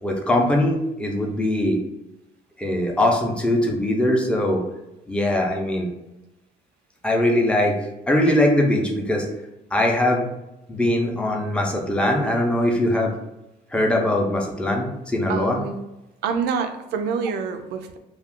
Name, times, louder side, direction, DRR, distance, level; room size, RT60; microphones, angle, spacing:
voice 1, 0.0-1.8 2.6-4.6 5.1-5.9 7.0-7.8 8.1-9.3 9.7-10.3 10.7-13.1 13.7-15.6, left 1 dB, 5° left, 0 dB, 0.5 m, -21 dB
voice 2, 15.3-15.8 16.2-18.0, right 6 dB, 75° right, 7 dB, 0.4 m, -26 dB
2.4 x 2.3 x 3.6 m, 0.93 s
cardioid pair, 110°, 17 cm